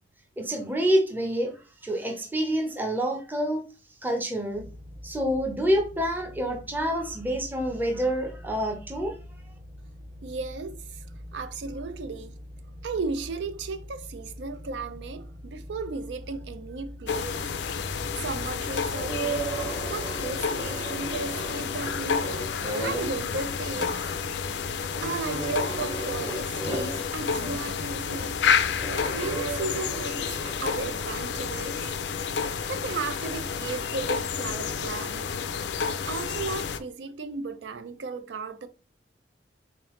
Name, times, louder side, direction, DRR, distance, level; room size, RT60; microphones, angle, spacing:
voice 1, 0.4-1.5 1.8-3.6 4.0-4.6 5.0-9.1, equal, 10° right, 0.6 m, -27 dB
sound 1, 4.5-20.1, left 1 dB, 50° right, 1.6 m, -44 dB
voice 2, 10.2-11.0 11.3-12.3 12.8-17.5 18.2-19.5 19.9-22.3 22.8-24.0 25.0-28.4 29.0-31.9 32.7-35.3 35.8-38.7, right 4 dB, 75° right, 0.4 m, -35 dB
sound 2, 17.1-36.8, left 6 dB, 70° left, 0.4 m, -30 dB
sound 3, 18.9-23.3 23.7-24.2 24.9-27.7 28.7-30.8, right 3 dB, 30° right, 1.2 m, -35 dB
3.8 x 3.3 x 3.0 m
head